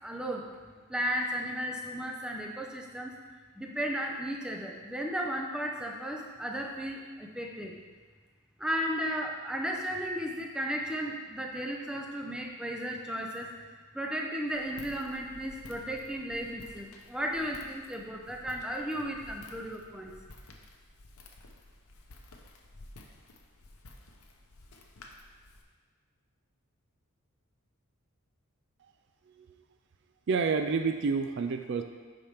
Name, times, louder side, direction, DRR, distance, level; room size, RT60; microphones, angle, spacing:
voice 1, 0.0-0.5 0.9-3.1 3.6-7.8 8.6-13.5 13.9-20.1, equal, 5° right, 0 dB, 0.6 m, -34 dB
Walk footsteps, 14.5-25.6, left 2 dB, 85° left, 0.8 m, -53 dB
voice 2, 30.3-31.8, right 5 dB, 55° right, 7 dB, 0.4 m, -28 dB
8.4 x 5.7 x 3.4 m, 1.5 s
head